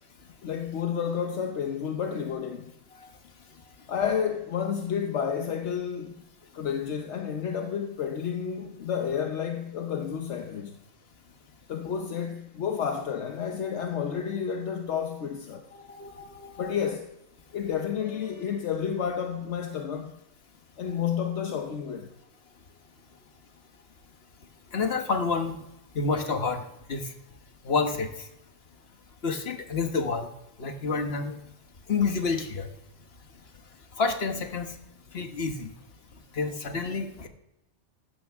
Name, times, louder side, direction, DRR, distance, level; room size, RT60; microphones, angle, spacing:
voice 1, 0.4-2.7 3.9-6.2 6.5-10.8 11.7-15.7 16.6-17.1 17.5-20.2 20.8-22.1, left 7 dB, 75° left, 1.1 m, -30 dB
voice 2, 15.9-16.7 24.7-25.6 25.9-26.6 26.9-27.1 27.6-28.1 29.2-30.3 30.6-31.4 31.9-32.7 34.0-34.7 35.1-35.7 36.3-37.3, left 4 dB, 60° left, 1.5 m, -28 dB
15.0 x 12.5 x 3.6 m
omnidirectional pair, 1.2 m